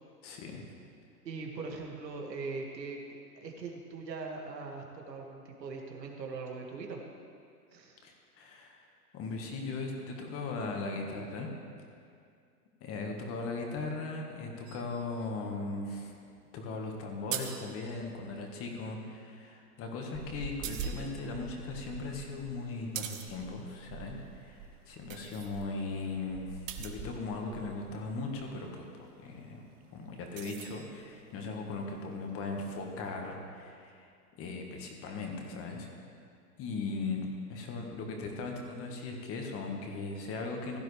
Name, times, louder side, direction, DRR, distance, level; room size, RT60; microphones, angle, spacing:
voice 1, 0.2-0.6 8.0-8.8 9.1-11.5 12.8-16.1 16.5-29.7 29.9-34.1 34.4-35.9 36.6-40.8, left 3 dB, 30° left, 1 dB, 1.6 m, -38 dB
voice 2, 1.2-7.0 7.7-8.0 25.2-25.4, right 4 dB, 85° right, 0 dB, 2.2 m, -41 dB
sound 1, 14.7-18.4 19.9-27.9 29.2-31.6, right 10 dB, 55° right, 1.1 m, -46 dB
sound 2, 20.1-28.7 28.9-29.1 29.5-30.4 30.7-31.1 31.3-31.4 31.6-32.1 32.6-33.1, right 5 dB, 20° right, 0.6 m, -46 dB
16.0 x 11.0 x 3.4 m, 2.3 s
hypercardioid pair, 130°, 48 cm